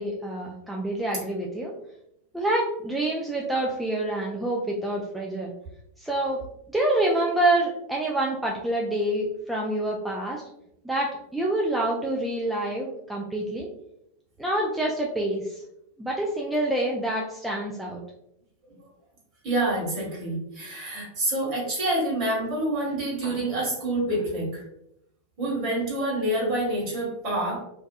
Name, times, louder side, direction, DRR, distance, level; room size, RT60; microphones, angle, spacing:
voice 1, 0.0-1.7 2.3-5.5 6.0-6.4 6.7-10.4 10.8-13.7 14.4-15.6 16.0-18.0, right 1 dB, 5° right, -3 dB, 0.3 m, -27 dB
voice 2, 19.4-24.6 25.4-27.6, right 1 dB, 40° right, -4 dB, 1.3 m, -27 dB
2.6 x 2.2 x 2.2 m, 0.80 s
figure-of-eight pair, 90°, 0 cm